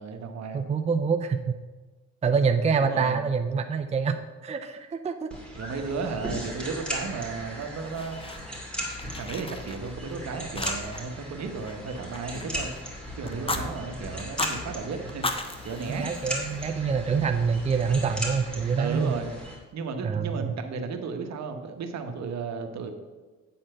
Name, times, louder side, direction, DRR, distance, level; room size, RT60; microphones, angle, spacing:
voice 1, 0.0-0.7 2.8-3.2 5.5-8.2 9.2-12.7 13.2-15.3 15.6-16.1 18.8-19.3 19.7-22.9, right 4 dB, 60° right, 6 dB, 1.1 m, -34 dB
voice 2, 0.5-1.6 2.2-4.2 4.4-5.3 13.2-13.6 15.9-19.1 20.0-20.5, right 5 dB, 20° right, 6 dB, 0.5 m, -26 dB
sound 1, 5.3-19.6, equal, 5° left, 2.4 m, -37 dB
Fire, 7.6-8.7 8.9-10.1 10.6-11.1 11.4-12.8 13.3-13.6 14.2-14.6 15.1-16.7, left 2 dB, 20° left, 0.8 m, -35 dB
8.7 x 4.3 x 6.5 m, 1.3 s
cardioid pair, 90°, 30 cm